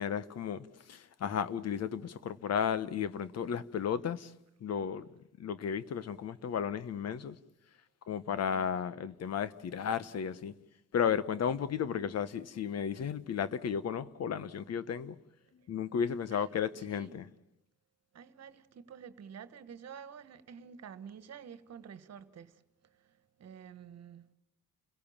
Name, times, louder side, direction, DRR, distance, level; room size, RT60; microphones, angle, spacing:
voice 1, 0.0-4.3 4.6-5.1 5.4-7.4 8.1-10.5 10.9-15.1 15.7-17.3, left 7 dB, 55° left, 1.1 m, -34 dB
voice 2, 8.4-8.9 16.3-16.6 16.9-17.1 18.1-24.3, right 7 dB, 55° right, 1.6 m, -50 dB
30.0 x 17.5 x 7.3 m
cardioid pair, 90°, 30 cm